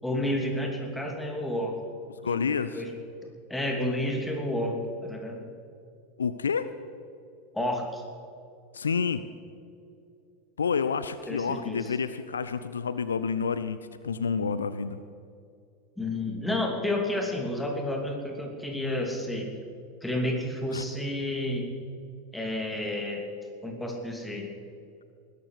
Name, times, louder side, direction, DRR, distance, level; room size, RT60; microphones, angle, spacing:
voice 1, 0.0-1.8 2.2-2.9 3.5-5.4 7.5-8.0 11.3-11.9 16.0-19.5 20.0-21.7 22.3-23.3 23.6-24.5, left 1 dB, 5° left, 1 dB, 2.9 m, -30 dB
voice 2, 2.2-2.8 6.2-6.7 8.7-9.2 10.6-13.8 14.0-15.0 20.7-20.9, left 6 dB, 75° left, 13 dB, 0.5 m, -29 dB
20.0 x 12.0 x 5.0 m, 2.5 s
figure-of-eight pair, 85°, 0 cm